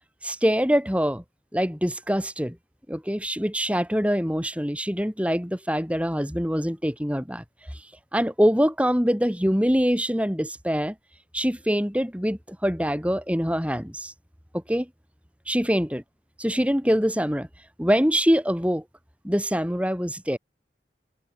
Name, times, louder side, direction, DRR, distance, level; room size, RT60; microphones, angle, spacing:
voice 1, 0.2-1.2 1.5-2.6 2.9-7.4 8.1-11.0 11.3-14.1 14.5-14.9 15.5-16.0 16.4-17.5 17.8-18.8 19.2-20.4, equal, 5° right, 6.8 m, -24 dB
head